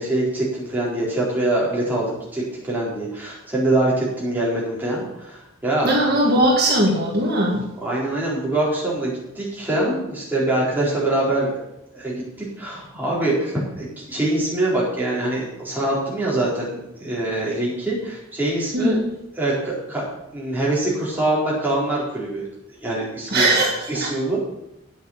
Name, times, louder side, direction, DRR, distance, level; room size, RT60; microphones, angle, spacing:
voice 1, 0.0-6.0 7.8-11.6 11.9-19.0 19.4-20.1 20.3-22.4 22.8-23.5 23.9-24.5, right 1 dB, 10° right, -6 dB, 4.1 m, -24 dB
voice 2, 5.8-7.6 18.7-19.1 23.3-24.1, right 1 dB, 45° right, -2 dB, 1.8 m, -19 dB
9.5 x 8.0 x 7.3 m, 0.85 s
head